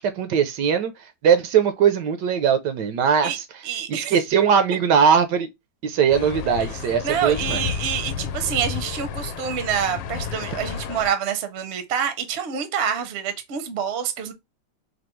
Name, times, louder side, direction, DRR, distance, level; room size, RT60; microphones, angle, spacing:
voice 1, 0.2-0.9 1.2-3.4 3.9-5.5 5.8-7.7, right 7 dB, 75° right, 1.2 m, -20 dB
voice 2, 3.6-4.1 7.0-14.3, right 8 dB, 50° right, 0.8 m, -27 dB
sound 1, 6.1-11.1, left 7 dB, 85° left, 1.3 m, -31 dB
4.3 x 2.7 x 3.0 m
omnidirectional pair, 2.0 m